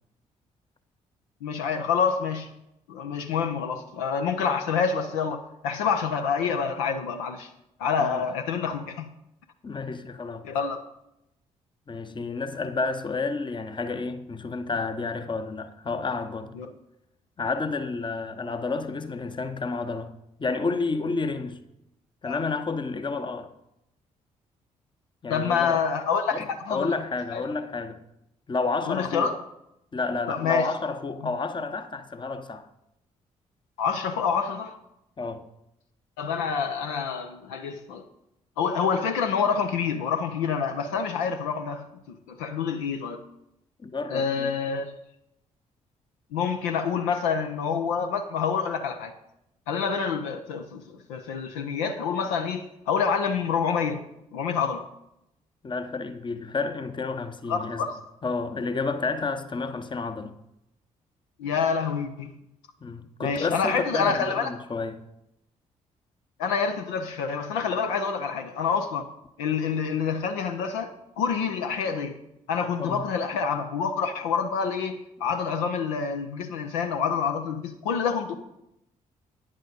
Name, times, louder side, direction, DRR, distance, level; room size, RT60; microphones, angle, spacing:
voice 1, 1.4-2.5 2.9-7.5 7.8-9.1 10.4-10.8 16.6-16.7 22.2-22.4 25.3-26.9 27.3-27.4 28.9-29.4 30.3-30.7 33.8-34.7 36.2-38.0 38.6-43.2 44.1-44.9 46.3-49.1 49.7-54.0 54.3-54.8 57.5-58.0 61.4-62.3 63.2-64.5 66.4-69.1 69.4-72.2 72.5-78.4, left 6 dB, 70° left, 0.7 m, -27 dB
voice 2, 9.6-10.5 11.9-16.6 17.4-21.6 22.2-23.5 25.2-25.8 26.3-28.0 28.5-29.3 29.9-32.7 35.2-35.5 43.8-44.5 55.6-57.9 58.2-60.4 62.8-65.0 72.8-73.1, left 3 dB, 25° left, 0.9 m, -30 dB
9.9 x 7.6 x 5.2 m
figure-of-eight pair, 40°, 18 cm